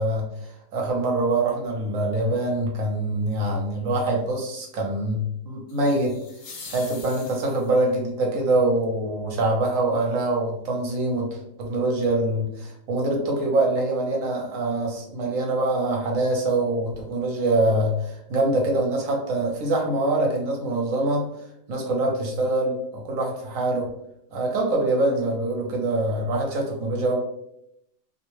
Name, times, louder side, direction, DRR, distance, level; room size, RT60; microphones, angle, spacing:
voice 1, 0.0-6.2 6.7-21.3 21.7-23.9 24.3-27.2, right 2 dB, 80° right, 0 dB, 1.1 m, -24 dB
sound 1, 5.7-7.9, left 4 dB, 65° left, 0.4 m, -43 dB
2.7 x 2.1 x 3.0 m, 0.79 s
omnidirectional pair, 1.4 m